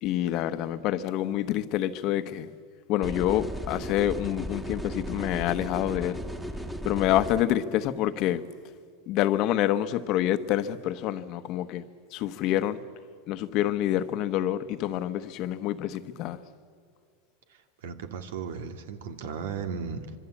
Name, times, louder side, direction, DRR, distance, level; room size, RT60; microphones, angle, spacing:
voice 1, 0.0-2.5 2.9-6.2 6.8-8.4 9.1-11.8 12.1-12.8 13.3-16.4, left 12 dB, 45° left, 1.1 m, -27 dB
sound 1, 3.0-7.4, equal, 5° right, 1.7 m, -35 dB
voice 2, 17.5-20.2, right 6 dB, 85° right, 2.4 m, -36 dB
25.5 x 25.0 x 8.5 m
supercardioid pair, 150°, 0 cm